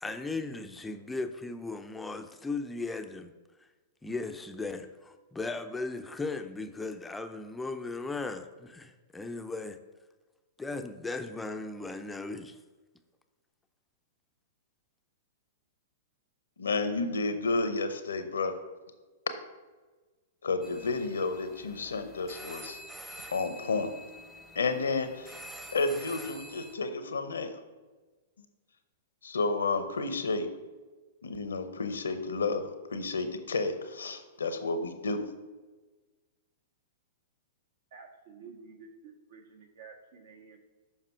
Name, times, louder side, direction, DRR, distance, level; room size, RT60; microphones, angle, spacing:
voice 1, 0.0-3.3 4.0-9.8 10.6-12.6, left 3 dB, 10° left, 7 dB, 0.5 m, -37 dB
voice 2, 16.6-18.5 20.4-22.8 23.3-23.9 24.5-25.4 25.7-27.5 29.2-30.5 31.2-35.2, left 3 dB, 85° left, 9 dB, 0.8 m, -31 dB
sound 1, 20.6-26.7, equal, 10° right, 0.9 m, -47 dB
voice 3, 37.9-40.6, right 5 dB, 65° right, 3 dB, 1.4 m, -51 dB
7.3 x 5.4 x 4.4 m, 1.3 s
hypercardioid pair, 115°, 0 cm